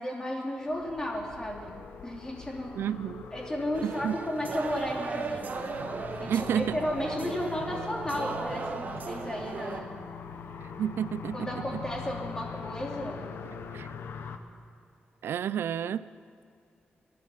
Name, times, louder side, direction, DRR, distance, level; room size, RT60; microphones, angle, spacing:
voice 1, 0.0-2.8 3.3-5.7 6.2-10.0 11.3-13.3, equal, 20° left, -1 dB, 3.0 m, -34 dB
sound 1, 0.7-14.4, left 6 dB, 85° left, 1.0 m, -43 dB
voice 2, 2.8-3.3 3.8-4.2 6.3-6.8 10.6-11.8 13.7-13.9 15.2-16.1, right 9 dB, 85° right, 17 dB, 0.4 m, -31 dB
sound 2, 3.7-9.8, right 4 dB, 50° right, 1.2 m, -37 dB
24.0 x 10.5 x 5.6 m, 2.5 s
wide cardioid pair, 120°, 4 cm